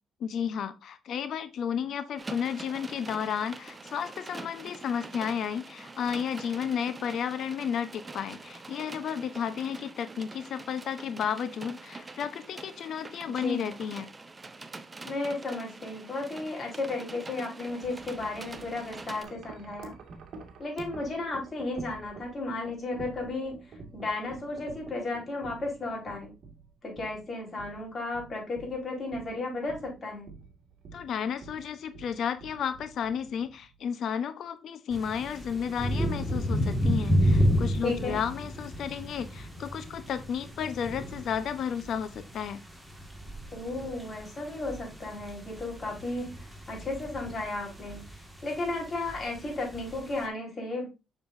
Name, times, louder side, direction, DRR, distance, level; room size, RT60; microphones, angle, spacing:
voice 1, 0.2-14.1 30.9-42.6, left 8 dB, 70° left, 12 dB, 1.0 m, -33 dB
sound 1, 2.2-19.2, right 3 dB, 25° right, 0.9 m, -45 dB
voice 2, 13.3-13.7 15.0-19.9 20.6-23.6 23.9-26.3 26.8-30.3 37.8-38.2 43.5-48.0 48.4-50.9, left 2 dB, 35° left, -1 dB, 4.8 m, -34 dB
Wind chime, 17.7-33.9, right 4 dB, 65° right, 2.1 m, -49 dB
sound 2, 34.9-50.2, equal, ahead, 1.9 m, -32 dB
6.8 x 6.8 x 2.7 m, 0.27 s
cardioid pair, 90°, 0 cm